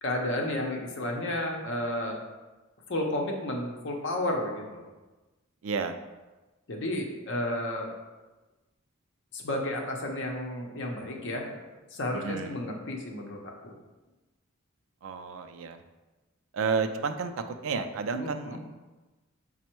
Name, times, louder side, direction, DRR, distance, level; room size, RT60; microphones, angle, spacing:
voice 1, 0.0-2.2 2.9-4.9 6.7-7.9 9.3-11.6 11.9-13.7 18.1-18.6, left 1 dB, 60° left, 1 dB, 0.7 m, -32 dB
voice 2, 5.6-6.0 12.1-12.6 15.0-15.8 16.5-18.6, right 5 dB, 70° right, 8 dB, 0.3 m, -31 dB
5.2 x 2.0 x 4.4 m, 1.2 s
head